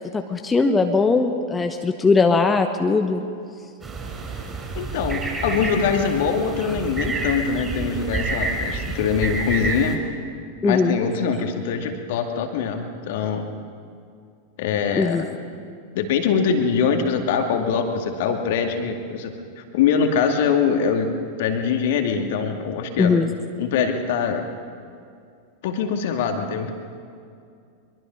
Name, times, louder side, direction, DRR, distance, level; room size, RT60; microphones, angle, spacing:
voice 1, 0.1-3.2 10.6-11.0 14.9-15.2 23.0-23.3, left 4 dB, 15° left, 5 dB, 1.2 m, -20 dB
sound 1, 3.8-10.0, right 3 dB, 15° right, 5.9 m, -28 dB
voice 2, 4.8-10.0 10.6-13.5 14.6-15.3 15.9-21.1 21.4-23.1 23.6-24.5 25.6-26.7, left 6 dB, 50° left, 5 dB, 2.2 m, -23 dB
23.5 x 23.0 x 5.6 m, 2.3 s
figure-of-eight pair, 90°, 0 cm